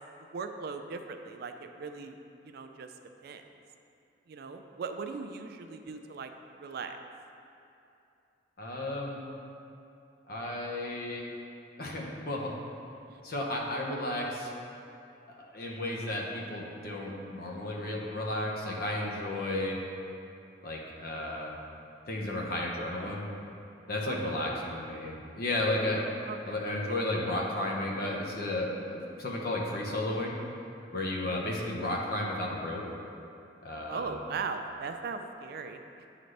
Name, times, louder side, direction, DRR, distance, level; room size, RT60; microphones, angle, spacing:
voice 1, 0.3-2.2 2.4-2.9 3.2-3.4 4.3-6.3 6.6-7.0 13.1-13.2 24.1-24.5 26.3-26.7 31.2-31.4 33.9-35.8, right 5 dB, 60° right, 7 dB, 0.4 m, -39 dB
voice 2, 8.6-9.3 10.3-11.3 11.8-12.5 13.2-14.5 15.4-19.8 20.6-21.5 22.1-23.3 23.9-26.0 26.5-30.3 30.9-32.8 33.6-34.1, left 1 dB, 55° left, -1 dB, 0.9 m, -33 dB
9.3 x 3.9 x 3.2 m, 2.7 s
head